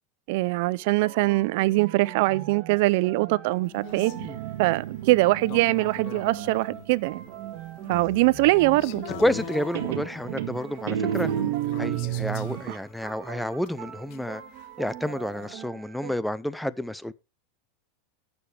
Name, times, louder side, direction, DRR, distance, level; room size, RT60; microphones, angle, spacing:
voice 1, 0.3-4.1 4.6-7.2 7.9-9.0 12.7-12.8, right 20 dB, 60° right, 0.5 m, -22 dB
sound 1, 0.8-16.2, right 11 dB, 40° right, 2.4 m, -42 dB
sound 2, 3.6-15.6, left 17 dB, 55° left, 0.8 m, -44 dB
Guitar, 4.0-7.6 9.1-9.5 9.7-12.7, right 11 dB, 80° right, 1.6 m, -32 dB
voice 2, 9.2-11.3 11.8-14.4 14.8-17.1, left 1 dB, 5° left, 0.6 m, -29 dB
18.0 x 6.9 x 3.3 m
supercardioid pair, 140°, 0 cm